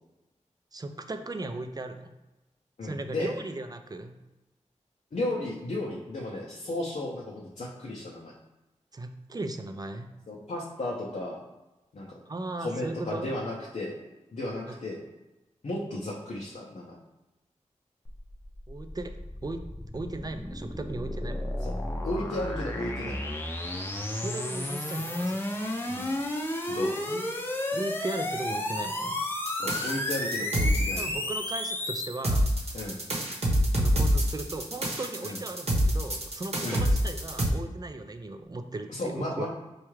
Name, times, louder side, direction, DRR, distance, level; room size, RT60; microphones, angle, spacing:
voice 1, 0.7-2.2 2.8-4.2 8.9-10.1 12.3-13.3 14.7-14.8 18.7-19.1 19.4-19.6 19.9-21.4 24.1-25.8 27.1-27.3 27.7-29.2 31.0-32.9 33.8-39.5, right 2 dB, 30° right, 7 dB, 0.4 m, -37 dB
voice 2, 2.8-3.3 5.1-8.3 10.3-11.4 11.9-12.2 12.6-14.0 14.3-15.0 15.6-17.0 21.6-21.7 22.0-23.3 25.9-26.2 26.7-27.0 29.6-31.2 32.7-33.0 35.2-35.4 36.6-36.8 38.9-39.5, left 1 dB, 65° left, -4 dB, 0.6 m, -34 dB
sound 1, 18.1-32.2, left 1 dB, 15° left, 0.6 m, -32 dB
sound 2, 29.5-31.0 32.2-37.5, equal, 55° right, 0.9 m, -26 dB
4.4 x 2.3 x 3.1 m, 1.0 s
cardioid pair, 45°, 13 cm